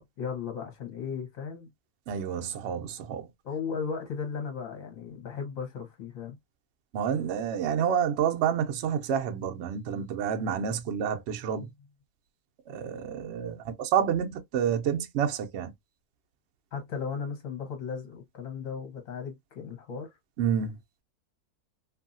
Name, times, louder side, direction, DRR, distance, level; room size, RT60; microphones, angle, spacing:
voice 1, 0.0-1.7 3.4-6.4 11.5-11.7 16.7-20.2, left 6 dB, 60° left, 1.3 m, -36 dB
voice 2, 2.1-3.3 6.9-11.7 12.7-15.7 20.4-20.7, right 8 dB, 70° right, 0.6 m, -29 dB
2.7 x 2.7 x 2.5 m
omnidirectional pair, 1.7 m